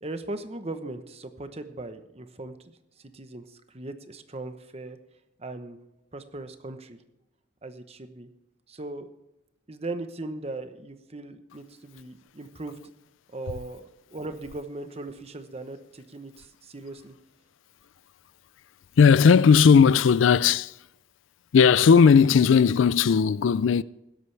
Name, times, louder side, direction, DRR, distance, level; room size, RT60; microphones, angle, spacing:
voice 1, 0.0-5.0 5.4-5.8 6.1-7.0 7.6-8.3 8.7-9.1 9.7-12.8 13.3-17.1, right 2 dB, 30° right, 1.0 m, -38 dB
voice 2, 19.0-20.8 21.5-23.8, left 6 dB, 80° left, 0.4 m, -17 dB
16.5 x 12.5 x 3.4 m
head